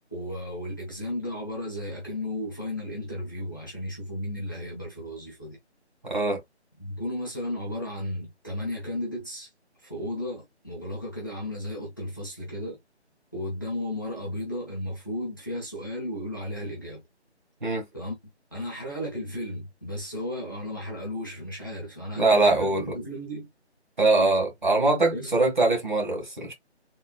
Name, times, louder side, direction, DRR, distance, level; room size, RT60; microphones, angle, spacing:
voice 1, 0.1-5.6 6.8-9.5 9.8-12.8 13.3-17.0 17.9-18.2 18.5-23.5 25.1-25.3, left 1 dB, 20° left, 0.9 m, -34 dB
voice 2, 6.0-6.4 17.6-17.8 22.2-22.9 24.0-26.5, right 2 dB, 45° right, 1.9 m, -22 dB
4.3 x 3.5 x 2.3 m
figure-of-eight pair, 180°, 34 cm